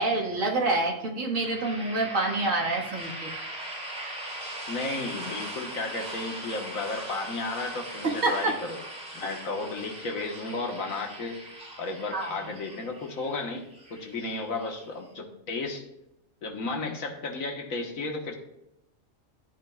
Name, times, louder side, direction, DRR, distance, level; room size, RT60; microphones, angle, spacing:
voice 1, 0.0-3.3 8.0-8.5 12.1-12.4 16.8-16.9, right 2 dB, 65° right, -1 dB, 2.0 m, -27 dB
sound 1, 1.3-15.1, right 1 dB, 45° right, 4.2 m, -40 dB
voice 2, 4.7-8.8 9.1-11.5 11.8-15.8 16.4-18.4, left 3 dB, 75° left, 3 dB, 1.7 m, -33 dB
14.0 x 8.4 x 2.3 m, 0.87 s
omnidirectional pair, 1.4 m